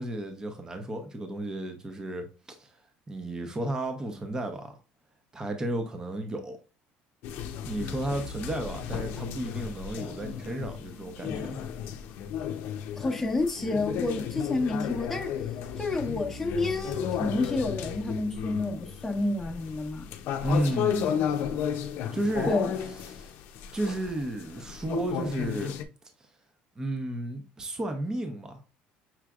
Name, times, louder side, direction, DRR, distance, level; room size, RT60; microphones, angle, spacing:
voice 1, 0.0-2.7 3.1-4.7 5.3-6.6 7.7-11.6 20.4-21.1 22.1-22.6 23.1-23.3 23.7-25.7 26.8-28.5, right 1 dB, 20° right, 0.8 m, -32 dB
sound 1, 7.2-25.8, left 8 dB, 65° left, 0.6 m, -34 dB
voice 2, 13.0-15.3 15.8-20.1 22.5-22.7, left 2 dB, 5° left, 1.0 m, -29 dB
5.9 x 3.2 x 2.4 m
cardioid pair, 130°, 4 cm